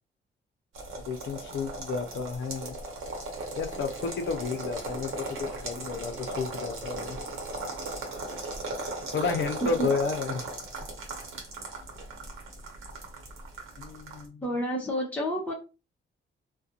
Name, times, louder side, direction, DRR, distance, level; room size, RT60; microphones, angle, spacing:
sound 1, 0.7-14.3, right 2 dB, 90° right, 0.9 m, -37 dB
voice 1, 1.1-2.8 3.6-7.2 9.1-10.5 13.8-14.5, left 5 dB, 65° left, 5 dB, 0.5 m, -32 dB
voice 2, 14.4-15.5, equal, 5° left, -3 dB, 0.6 m, -29 dB
2.4 x 2.2 x 2.7 m, 0.30 s
cardioid pair, 130°, 20 cm